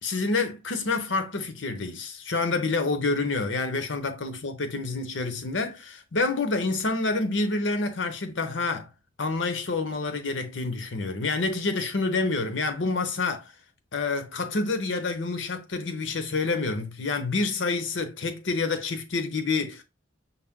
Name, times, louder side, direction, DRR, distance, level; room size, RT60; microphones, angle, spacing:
voice 1, 0.0-8.9 9.2-13.5 13.9-19.8, left 3 dB, 80° left, 0.8 m, -28 dB
5.7 x 2.1 x 3.6 m
head